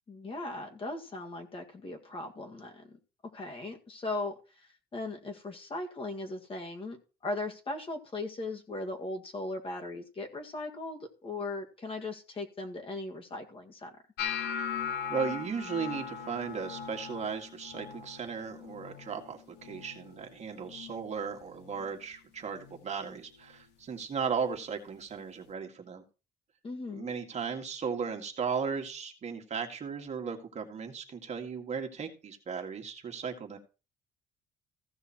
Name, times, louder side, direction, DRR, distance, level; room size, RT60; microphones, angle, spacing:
voice 1, 0.1-3.0 3.3-7.0 7.2-13.9 26.6-27.1, left 2 dB, 35° left, 3 dB, 2.0 m, -38 dB
sound 1, 14.2-20.3 20.5-21.1 21.4-22.0 22.6-22.8 24.5-24.6, left 7 dB, 85° left, 1.4 m, -39 dB
voice 2, 15.1-26.0 26.9-33.6, right 6 dB, 40° right, 3 dB, 1.9 m, -36 dB
15.0 x 5.7 x 4.4 m, 0.33 s
cardioid pair, 110°, 17 cm